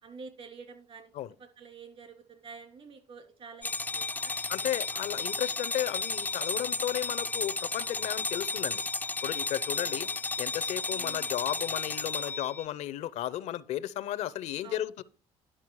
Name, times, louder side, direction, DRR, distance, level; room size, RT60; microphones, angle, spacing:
voice 1, 0.0-1.1 1.4-4.4 9.7-10.1 10.9-11.3 14.6-14.9, right 5 dB, 50° right, 2.9 m, -48 dB
sound 1, 3.6-12.7, left 3 dB, 15° left, 0.4 m, -33 dB
voice 2, 4.5-8.8 9.2-10.1 10.4-15.0, left 12 dB, 70° left, 0.6 m, -34 dB
11.0 x 5.7 x 4.6 m
supercardioid pair, 85°, 12 cm